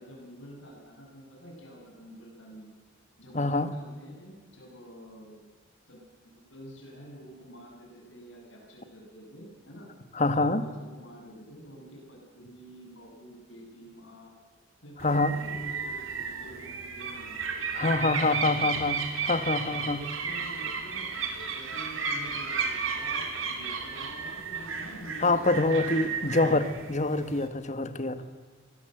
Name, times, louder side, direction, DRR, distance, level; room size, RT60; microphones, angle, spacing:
voice 1, 0.0-2.7 3.2-5.5 5.9-9.9 10.3-14.3 14.8-17.4 19.7-21.1 21.5-26.6 28.2-28.3, equal, 65° left, 0 dB, 7.7 m, -48 dB
voice 2, 3.3-3.7 10.1-10.6 15.0-15.3 17.7-20.0 25.2-28.2, left 2 dB, 35° left, 11 dB, 1.4 m, -26 dB
sound 1, 15.0-27.5, right 5 dB, 85° right, 3.3 m, -33 dB
24.0 x 17.5 x 7.9 m, 1.5 s
head